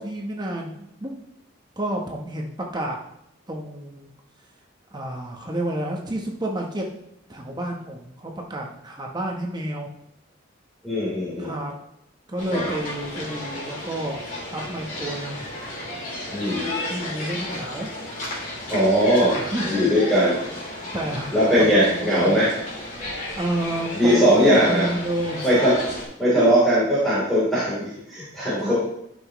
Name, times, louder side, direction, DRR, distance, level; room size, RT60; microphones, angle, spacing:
voice 1, 0.0-1.1 1.8-3.0 3.5-4.1 4.9-6.9 7.3-9.9 11.4-11.7 12.3-14.2 14.5-15.4 16.9-17.9 19.4-19.9 20.9-21.3 21.7-22.4 23.4-25.4 26.3-26.5 28.6-28.7, right 1 dB, 20° right, 0 dB, 1.0 m, -30 dB
voice 2, 10.8-11.5 12.5-12.7 16.3-16.8 18.7-19.4 19.6-20.3 21.3-22.5 23.9-24.9 25.4-25.7 26.2-28.7, equal, ahead, -11 dB, 3.3 m, -19 dB
sound 1, 12.4-26.0, left 1 dB, 40° left, 2.9 m, -33 dB
11.5 x 5.9 x 3.1 m, 0.78 s
head